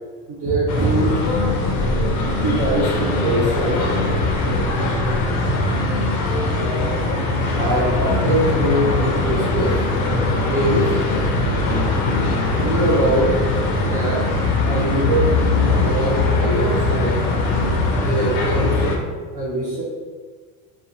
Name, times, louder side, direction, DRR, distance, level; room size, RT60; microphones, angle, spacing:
voice 1, 0.3-1.2 2.4-3.8 7.6-9.8 10.4-11.0 12.5-13.4 13.8-14.2 14.6-17.2 17.9-18.8 19.3-19.8, right 1 dB, 50° right, -8 dB, 0.8 m, -22 dB
sound 1, 0.7-19.0, left 2 dB, 55° left, 0.5 m, -20 dB
2.7 x 2.0 x 2.5 m, 1.5 s
supercardioid pair, 100°, 43 cm